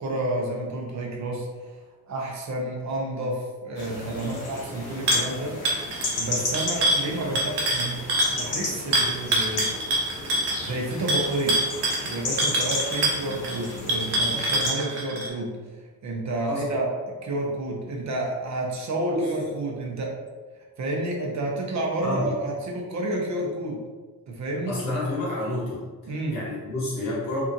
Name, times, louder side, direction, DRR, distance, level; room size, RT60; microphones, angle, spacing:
voice 1, 0.0-8.0 8.3-9.7 10.6-11.6 12.0-16.9 17.2-20.2 20.8-23.8 24.3-24.8 26.1-26.4, right 1 dB, 50° right, -1 dB, 0.6 m, -30 dB
sound 1, 3.7-14.7, left 2 dB, 75° left, 0.9 m, -34 dB
sound 2, 5.1-5.3 5.7-8.4 8.9-15.3, right 1 dB, 85° right, 0.7 m, -25 dB
voice 2, 24.7-25.8 26.3-27.4, left 1 dB, 60° left, -6 dB, 1.2 m, -29 dB
2.7 x 2.4 x 2.5 m, 1.4 s
cardioid pair, 105°, 37 cm